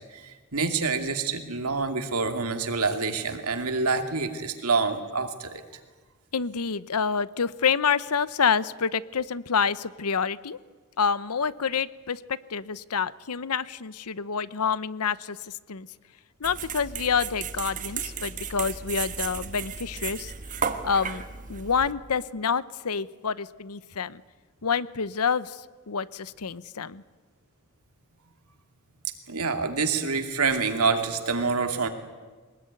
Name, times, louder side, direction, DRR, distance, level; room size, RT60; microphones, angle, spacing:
voice 1, 0.1-5.6 29.0-31.9, right 4 dB, 85° right, 6 dB, 2.5 m, -27 dB
voice 2, 6.3-10.6 11.0-15.9 16.4-20.3 20.8-21.2 21.5-24.2 24.6-27.0, left 6 dB, 90° left, 17 dB, 0.8 m, -28 dB
sound 1, 16.4-21.9, right 6 dB, 35° right, 1.6 m, -34 dB
23.0 x 20.0 x 9.6 m, 1.4 s
head